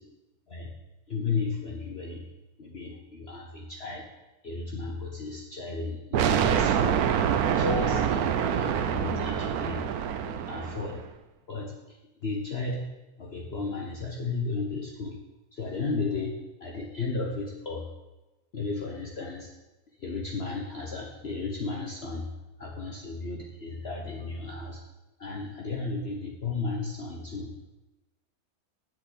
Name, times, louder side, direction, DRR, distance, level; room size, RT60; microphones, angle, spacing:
voice 1, 1.1-2.2 2.6-4.1 4.4-7.1 7.4-9.8 10.1-11.0 11.5-12.0 12.2-12.9 13.2-15.2 15.5-17.9 18.5-19.5 20.0-22.2 22.6-24.8 25.2-27.5, left 3 dB, 45° left, -1 dB, 1.3 m, -34 dB
sound 1, 6.1-11.0, right 8 dB, 80° right, 1.2 m, -26 dB
8.0 x 7.4 x 8.4 m, 1.0 s
omnidirectional pair, 1.6 m